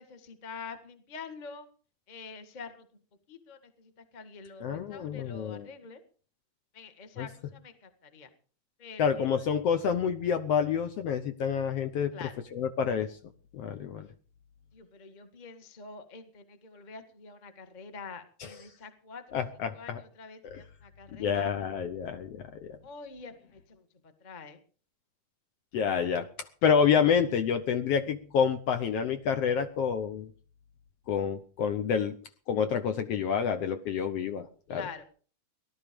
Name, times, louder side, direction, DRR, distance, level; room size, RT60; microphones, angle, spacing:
voice 1, 0.0-1.7 2.1-2.8 3.3-6.0 6.7-8.3 8.8-9.2 12.1-12.3 14.7-19.4 19.7-21.5 22.8-23.8 24.2-24.6 25.9-26.2 34.7-35.0, left 5 dB, 25° left, 8 dB, 1.0 m, -46 dB
voice 2, 4.6-5.7 7.2-7.3 9.0-13.1 13.5-14.1 18.4-18.5 19.3-20.0 20.5-20.6 21.1-22.4 25.7-26.3 26.6-30.3 31.1-32.2 32.5-34.9, left 7 dB, 65° left, 8 dB, 1.7 m, -28 dB
18.0 x 12.0 x 5.2 m, 0.42 s
omnidirectional pair, 3.4 m